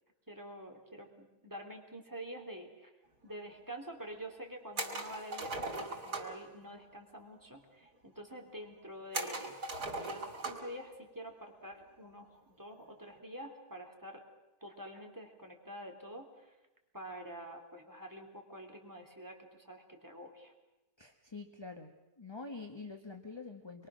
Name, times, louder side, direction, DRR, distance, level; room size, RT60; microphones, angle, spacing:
voice 1, 0.3-2.9 3.2-12.3 12.6-14.2 14.6-16.6 16.9-20.5, right 1 dB, 10° right, 2 dB, 3.1 m, -47 dB
sound 1, 4.8-6.4 9.1-10.8 11.1-11.2 12.8-13.1, right 2 dB, 85° right, 3.7 m, -39 dB
voice 2, 21.0-23.9, left 3 dB, 20° left, 4 dB, 1.3 m, -46 dB
26.0 x 23.0 x 6.3 m, 1.0 s
omnidirectional pair, 1.7 m